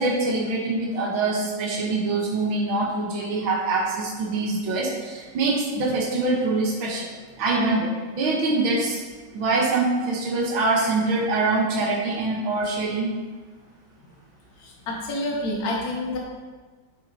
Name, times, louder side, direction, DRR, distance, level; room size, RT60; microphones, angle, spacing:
voice 1, 0.0-7.1 7.4-9.0 9.3-13.1, right 3 dB, 85° right, -2 dB, 1.8 m, -24 dB
voice 2, 14.6-16.2, left 1 dB, 55° left, -2 dB, 1.7 m, -28 dB
11.0 x 6.1 x 2.7 m, 1.4 s
omnidirectional pair, 2.1 m